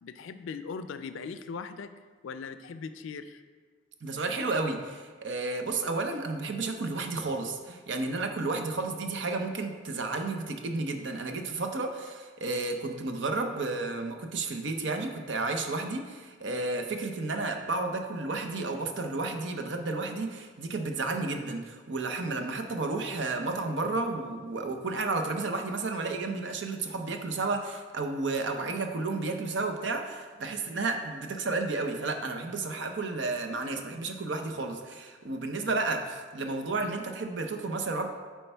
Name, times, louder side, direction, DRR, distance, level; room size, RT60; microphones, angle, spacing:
voice 1, 0.0-1.9 2.2-3.4, left 5 dB, 85° left, 11 dB, 0.4 m, -39 dB
voice 2, 4.0-38.1, right 3 dB, 70° right, 5 dB, 0.6 m, -32 dB
8.5 x 4.5 x 3.4 m, 1.5 s
head